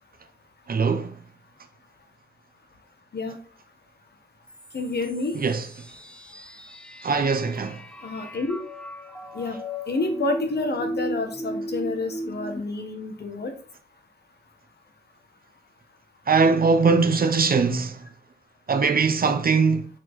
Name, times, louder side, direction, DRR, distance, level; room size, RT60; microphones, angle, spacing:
voice 1, 0.7-1.2 5.4-5.6 7.0-7.8 16.3-18.0 18.7-19.9, right 4 dB, 55° right, 0.8 m, -21 dB
sound 1, 4.5-12.6, equal, 5° left, 0.7 m, -36 dB
voice 2, 4.7-5.4 8.0-8.6 9.3-9.6 9.9-13.5, left 3 dB, 65° left, 1.5 m, -29 dB
6.0 x 4.5 x 4.5 m
wide cardioid pair, 125°, 18 cm